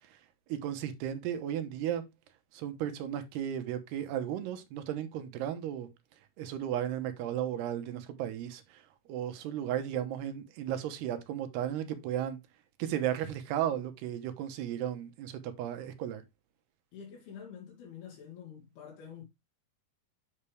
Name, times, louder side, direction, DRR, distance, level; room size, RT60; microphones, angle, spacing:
voice 1, 0.5-2.0 2.5-5.9 6.4-8.8 9.1-12.4 12.8-16.2, right 10 dB, 85° right, 3.1 m, -34 dB
voice 2, 16.9-19.2, left 7 dB, 70° left, 4.0 m, -47 dB
8.0 x 7.1 x 3.3 m
omnidirectional pair, 4.6 m